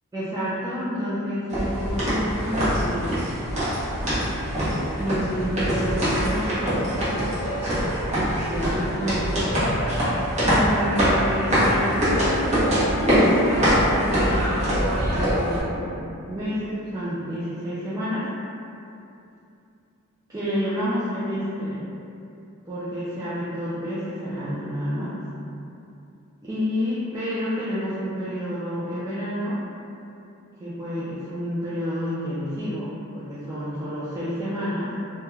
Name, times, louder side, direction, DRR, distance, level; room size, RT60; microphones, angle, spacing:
voice 1, 0.1-3.2 5.0-6.8 8.4-9.3 10.4-12.4 13.0-18.3 20.3-21.9 22.7-25.2 26.4-29.6 30.6-34.9, equal, 15° right, -12 dB, 0.3 m, -29 dB
sound 1, 1.5-15.6, equal, 30° right, 0.7 m, -23 dB
2.3 x 2.1 x 3.0 m, 2.7 s
head